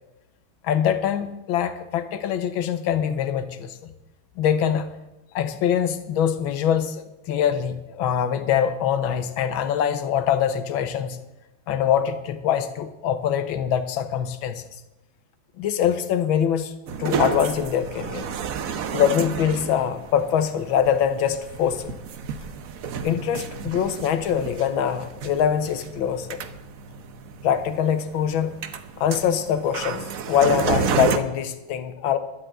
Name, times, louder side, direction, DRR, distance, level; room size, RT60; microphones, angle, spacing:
voice 1, 0.6-3.8 4.4-4.9 5.3-11.2 11.7-14.6 15.6-16.7 17.0-18.2 18.9-22.0 23.0-26.4 27.4-28.6 29.0-32.2, left 9 dB, 80° left, 10 dB, 1.7 m, -23 dB
sound 1, 16.9-31.2, right 6 dB, 55° right, 1.0 m, -31 dB
12.5 x 8.0 x 8.9 m, 1.0 s
omnidirectional pair, 2.2 m